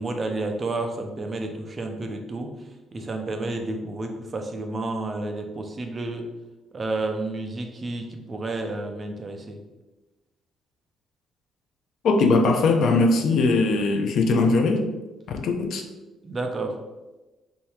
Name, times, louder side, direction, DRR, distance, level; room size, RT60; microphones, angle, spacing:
voice 1, 0.0-2.5 2.9-6.2 6.7-9.6 16.2-16.8, right 2 dB, 25° right, 4 dB, 0.4 m, -30 dB
voice 2, 12.0-14.8 15.3-15.8, left 3 dB, 55° left, 4 dB, 0.5 m, -20 dB
3.5 x 2.7 x 4.2 m, 1.1 s
cardioid pair, 170°, 0 cm